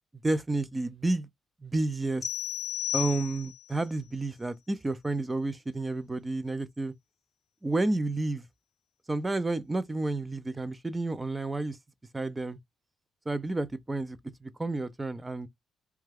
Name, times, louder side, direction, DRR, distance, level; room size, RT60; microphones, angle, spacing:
voice 1, 0.2-1.3 1.6-2.2 2.9-6.9 7.6-8.5 9.1-11.8 12.1-12.6 13.3-15.5, right 2 dB, 15° right, 0.4 m, -30 dB
sound 1, 2.2-3.7, left 11 dB, 65° left, 0.6 m, -33 dB
2.3 x 2.2 x 3.3 m
cardioid pair, 90°, 0 cm